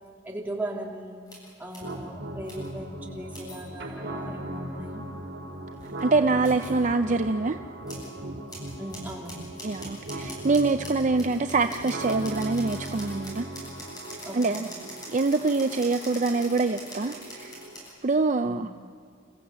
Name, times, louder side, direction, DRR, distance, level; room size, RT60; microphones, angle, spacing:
voice 1, 0.2-1.2 1.6-5.0 8.8-9.4 14.2-14.7 18.5-18.7, right 1 dB, 10° right, -2 dB, 3.1 m, -38 dB
sound 1, 1.3-1.9 2.4-2.7 3.3-3.9 5.7-6.8 7.9-8.1 8.5-17.9, equal, 20° left, 8.0 m, -44 dB
sound 2, 1.8-17.8, right 1 dB, 80° right, 3.4 m, -38 dB
voice 2, 6.0-7.6 9.6-13.5 14.3-14.7 15.1-17.6 18.0-18.7, right 3 dB, 40° right, 8 dB, 0.5 m, -25 dB
29.5 x 15.0 x 8.2 m, 2.3 s
head